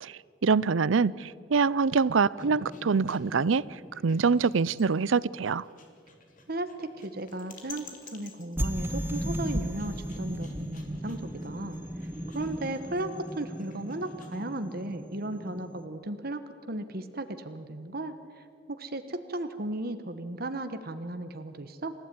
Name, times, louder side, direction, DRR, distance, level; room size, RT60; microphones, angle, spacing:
voice 1, 0.0-3.6 4.0-5.7, right 5 dB, 90° right, 0.6 m, -25 dB
sound 1, 1.8-14.5, left 6 dB, 45° left, 3.3 m, -54 dB
sound 2, 2.4-5.5 8.6-15.9, equal, 10° right, 1.1 m, -37 dB
voice 2, 6.5-7.8 8.1-11.8 12.3-21.9, right 1 dB, 50° right, 1.3 m, -35 dB
28.0 x 15.5 x 9.6 m
head